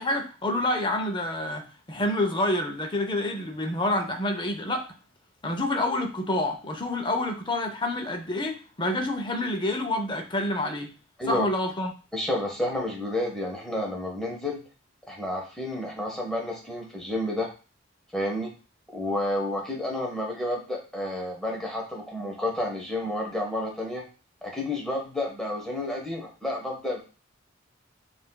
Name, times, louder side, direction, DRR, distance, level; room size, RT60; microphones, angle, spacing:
voice 1, 0.0-4.9 5.4-10.9 11.3-11.9, left 1 dB, 25° left, 5 dB, 0.6 m, -28 dB
voice 2, 12.1-14.6 15.1-17.5 18.1-18.5 18.9-24.0 24.4-27.0, left 1 dB, ahead, -1 dB, 1.0 m, -30 dB
6.3 x 2.5 x 2.3 m, 0.34 s
head